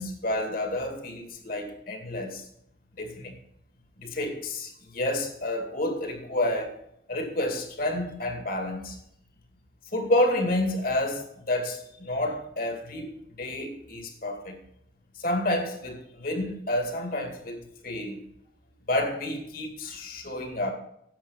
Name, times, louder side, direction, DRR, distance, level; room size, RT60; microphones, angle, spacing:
voice 1, 0.0-2.4 3.0-3.3 4.0-6.8 7.1-9.0 9.9-13.1 13.4-14.6 15.2-18.2 18.9-20.7, left 1 dB, 45° left, 2.3 m, -29 dB
10.5 x 7.4 x 7.3 m
head